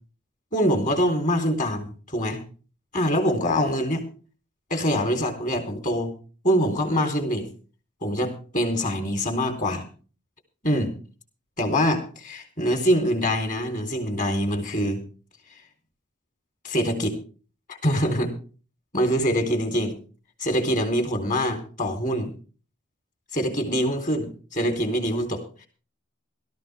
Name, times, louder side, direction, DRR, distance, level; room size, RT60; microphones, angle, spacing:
voice 1, 0.5-2.4 2.9-4.0 4.7-6.1 6.4-7.5 8.0-9.8 10.6-10.9 11.6-15.0 16.6-17.1 17.7-18.4 18.9-20.0 20.4-22.3 23.3-25.7, equal, 40° left, 6 dB, 4.0 m, -24 dB
17.0 x 14.0 x 3.6 m, 0.38 s
head